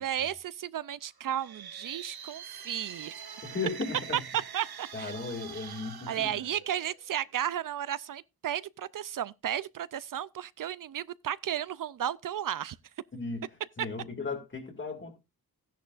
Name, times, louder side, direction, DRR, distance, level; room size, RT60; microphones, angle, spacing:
voice 1, 0.0-3.2 4.3-5.1 5.5-12.8, right 10 dB, 60° right, 0.5 m, -34 dB
sound 1, 1.2-7.1, right 7 dB, 85° right, 1.5 m, -45 dB
voice 2, 3.4-4.2 4.9-6.3 13.1-13.5 13.8-15.2, left 4 dB, 30° left, 2.4 m, -36 dB
15.0 x 10.5 x 2.4 m
wide cardioid pair, 145°, 36 cm